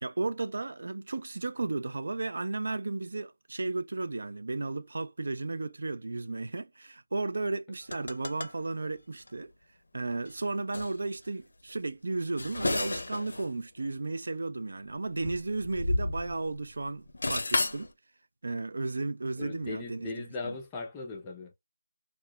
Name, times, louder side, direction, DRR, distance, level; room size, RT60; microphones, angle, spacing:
voice 1, 0.0-9.5 9.9-17.9 18.4-20.1 20.4-20.5, right 3 dB, 60° right, 0.4 m, -34 dB
sound 1, 7.8-8.6 9.2-9.3 10.3-10.4 10.7-10.9 12.1-13.5 13.8-13.9 14.9-16.6 16.9-17.9, left 2 dB, 70° left, 0.6 m, -32 dB
voice 2, 19.4-21.5, left 4 dB, 10° left, 0.4 m, -38 dB
2.9 x 2.1 x 2.2 m
figure-of-eight pair, 175°, 0 cm